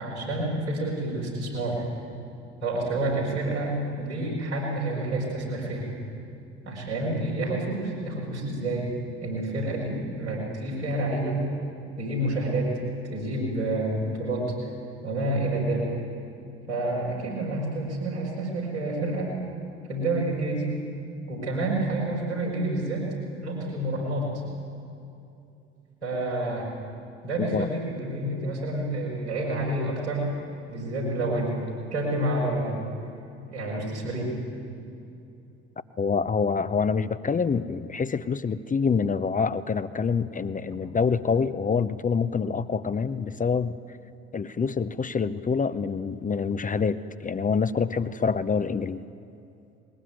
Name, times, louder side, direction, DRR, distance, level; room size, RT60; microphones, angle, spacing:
voice 1, 0.0-1.8 2.6-5.9 6.6-8.9 9.2-11.4 12.0-12.8 13.1-14.5 15.0-15.9 16.7-19.4 19.9-20.7 21.3-23.1 23.4-24.4 26.0-26.7 27.2-30.4 30.7-31.5 31.9-32.8 33.5-34.3, right 1 dB, 85° right, -5 dB, 5.3 m, -28 dB
voice 2, 36.0-43.8 44.3-49.0, left 5 dB, 25° left, 12 dB, 0.8 m, -26 dB
20.5 x 18.5 x 9.4 m, 2.7 s
figure-of-eight pair, 50°, 33 cm